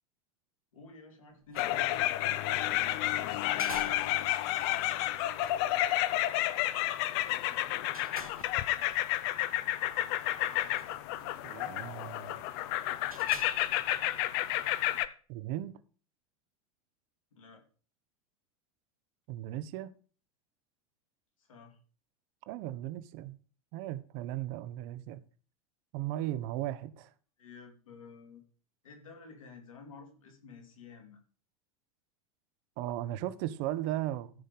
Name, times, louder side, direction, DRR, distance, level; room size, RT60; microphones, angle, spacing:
voice 1, 0.7-3.7 17.3-17.6 21.4-21.8 27.4-28.4 28.8-31.2, left 4 dB, 70° left, 3.1 m, -52 dB
sound 1, 1.3-14.8, right 2 dB, 90° right, 1.6 m, -52 dB
sound 2, 1.5-15.1, left 14 dB, 50° left, 0.7 m, -31 dB
voice 2, 11.4-12.4 15.3-15.8 19.3-19.9 22.5-23.4 23.7-25.2 25.9-27.1 32.8-34.3, right 14 dB, 45° right, 0.8 m, -36 dB
14.0 x 5.2 x 5.2 m
figure-of-eight pair, 85°, 18 cm